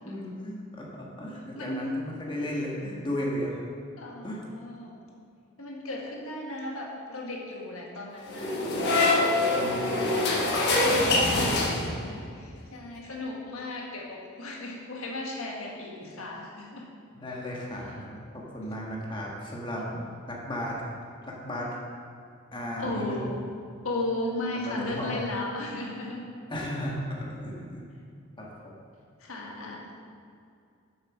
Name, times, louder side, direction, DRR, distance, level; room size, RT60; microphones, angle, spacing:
voice 1, 0.0-3.6 4.2-4.4 9.5-10.2 11.2-11.7 17.1-19.8 20.3-20.8 21.2-21.7 22.5-23.3 24.5-25.2 26.5-27.8 28.4-28.5, equal, 25° left, -3 dB, 1.4 m, -35 dB
voice 2, 1.5-2.0 4.0-5.0 5.6-8.6 10.8-11.5 12.3-16.8 22.8-23.4 23.8-26.2 29.2-29.9, left 2 dB, 80° left, -2 dB, 1.6 m, -35 dB
sound 1, 8.3-12.2, left 2 dB, 50° left, 1.3 m, -24 dB
7.9 x 6.6 x 5.9 m, 2.5 s
head